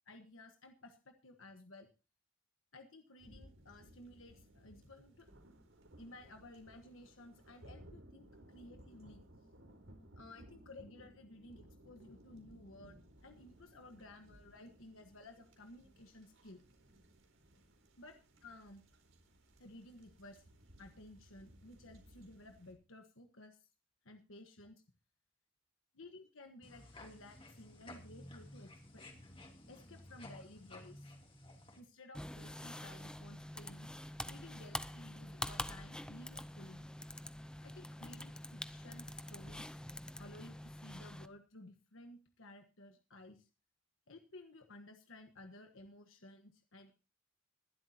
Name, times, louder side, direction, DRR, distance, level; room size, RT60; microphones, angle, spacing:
voice 1, 0.1-1.9 2.7-5.3 6.0-9.2 10.2-16.6 17.9-18.2 18.4-18.8 19.6-20.4 20.8-23.7 24.0-24.8 25.9-29.0 29.7-31.1 31.7-33.9 34.2-36.9 37.6-39.8 40.2-43.5 44.1-46.9, left 1 dB, 85° left, 5 dB, 1.4 m, -56 dB
sound 1, 3.2-22.7, right 1 dB, 80° right, 4.3 m, -61 dB
sound 2, 26.6-31.8, left 1 dB, 25° left, 2.9 m, -54 dB
sound 3, 32.1-41.3, left 1 dB, 5° left, 0.6 m, -46 dB
20.5 x 12.0 x 2.8 m, 0.31 s
head